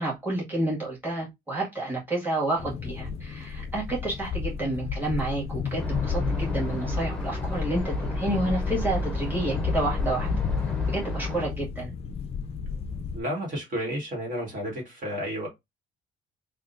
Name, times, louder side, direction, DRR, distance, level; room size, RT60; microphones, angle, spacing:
voice 1, 0.0-10.3 10.9-11.9, right 2 dB, 10° right, 1.8 m, -30 dB
sound 1, 2.6-13.2, left 5 dB, 35° left, 0.4 m, -32 dB
sound 2, 5.8-11.5, left 1 dB, 5° left, 0.8 m, -32 dB
voice 2, 13.1-15.5, equal, 50° right, 1.7 m, -31 dB
3.6 x 2.4 x 2.5 m
cardioid pair, 110°, 17 cm